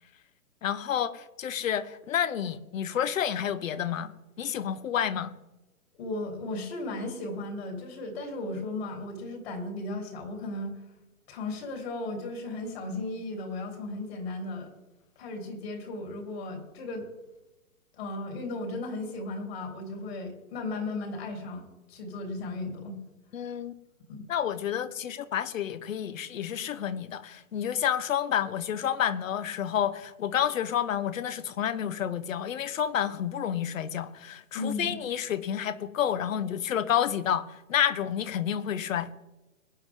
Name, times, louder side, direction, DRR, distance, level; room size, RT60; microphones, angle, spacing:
voice 1, 0.6-4.1 4.4-5.3 23.3-23.7 24.3-39.1, left 9 dB, 65° left, 16 dB, 1.0 m, -29 dB
voice 2, 6.0-10.7 11.3-14.7 15.2-17.1 18.0-23.0 24.1-24.3 34.5-35.0, left 2 dB, 45° left, 2 dB, 3.7 m, -35 dB
21.5 x 9.2 x 3.7 m, 1.0 s
hypercardioid pair, 165°, 43 cm